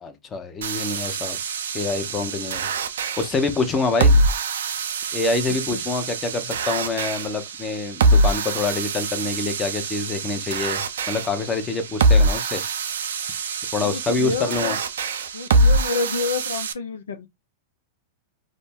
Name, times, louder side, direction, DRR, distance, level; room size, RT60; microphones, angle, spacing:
voice 1, 0.0-1.4 1.7-2.7 3.2-4.2 5.1-12.6 13.7-14.8, left 3 dB, 25° left, 0.8 m, -26 dB
sound 1, 0.6-16.7, right 2 dB, 75° right, 0.4 m, -24 dB
voice 2, 13.8-14.8 15.3-17.3, left 4 dB, 80° left, 0.4 m, -28 dB
2.5 x 2.1 x 3.6 m
hypercardioid pair, 105°, 0 cm